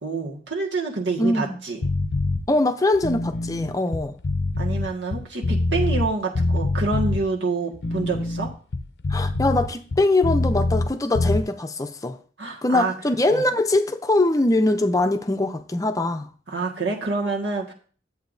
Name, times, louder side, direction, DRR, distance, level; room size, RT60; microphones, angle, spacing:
voice 1, 0.0-1.8 4.6-8.5 12.4-12.9 13.3-13.4 16.5-17.7, right 3 dB, 90° right, 1.7 m, -27 dB
voice 2, 1.2-1.6 2.5-4.1 9.1-12.2 12.6-16.3, left 2 dB, 20° left, 0.5 m, -22 dB
sound 1, 1.8-2.4 2.9-6.1 6.4-7.2 7.7-10.9 11.2-11.4, left 2 dB, 70° left, 0.6 m, -24 dB
10.5 x 8.0 x 2.6 m
head